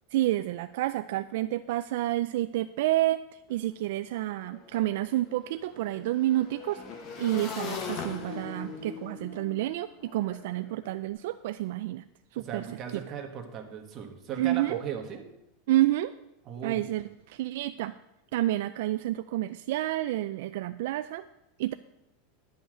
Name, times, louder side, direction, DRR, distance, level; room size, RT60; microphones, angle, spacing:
voice 1, 0.1-3.2 3.5-6.8 7.2-12.0 12.3-12.7 12.9-13.0 14.4-14.8 15.7-16.1 16.6-18.0 18.3-21.3 21.6-21.7, right 15 dB, 60° right, 11 dB, 0.3 m, -29 dB
Motorcycle / Engine, 3.5-3.6 3.9-11.0, left 5 dB, 30° left, 1.1 m, -41 dB
voice 2, 12.3-15.2 16.5-16.9, right 8 dB, 25° right, 3 dB, 1.2 m, -37 dB
10.5 x 5.6 x 7.6 m, 0.87 s
supercardioid pair, 175°, 0 cm